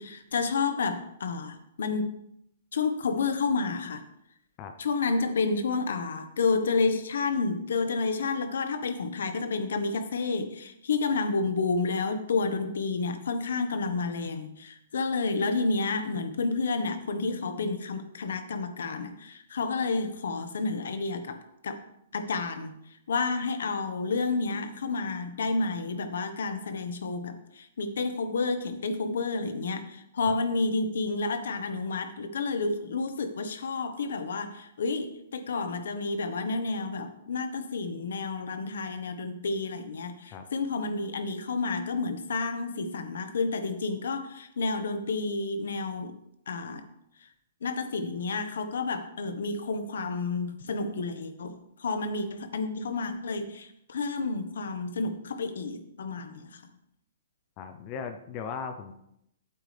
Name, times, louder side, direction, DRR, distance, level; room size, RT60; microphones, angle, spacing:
voice 1, 0.0-2.2 2.7-4.0 4.8-21.4 21.6-21.8 22.1-22.7 23.1-46.1 46.5-46.8 47.6-56.6, left 4 dB, 75° left, 8 dB, 1.3 m, -30 dB
voice 2, 57.6-58.9, left 6 dB, 20° left, 8 dB, 0.6 m, -37 dB
11.5 x 8.5 x 3.4 m, 0.78 s
hypercardioid pair, 175°, 0 cm